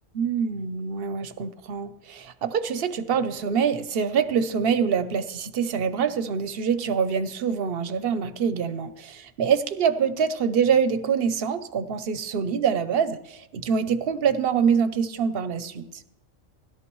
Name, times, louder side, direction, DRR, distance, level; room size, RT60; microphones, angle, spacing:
voice 1, 0.1-15.9, right 6 dB, 55° right, 12 dB, 0.9 m, -25 dB
16.5 x 11.5 x 3.1 m, 0.83 s
omnidirectional pair, 1.3 m